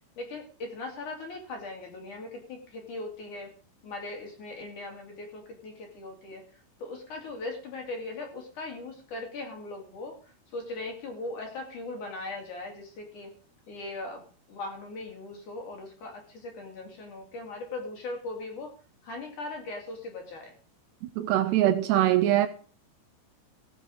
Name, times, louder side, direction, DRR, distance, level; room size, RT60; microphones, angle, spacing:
voice 1, 0.2-3.5 3.8-6.4 6.8-10.2 10.5-13.3 13.7-14.2 14.5-18.7 19.0-20.6, left 2 dB, 45° left, 3.8 m, -39 dB
voice 2, 21.2-22.5, right 13 dB, 80° right, 2.7 m, -22 dB
16.5 x 7.2 x 6.6 m
omnidirectional pair, 5.3 m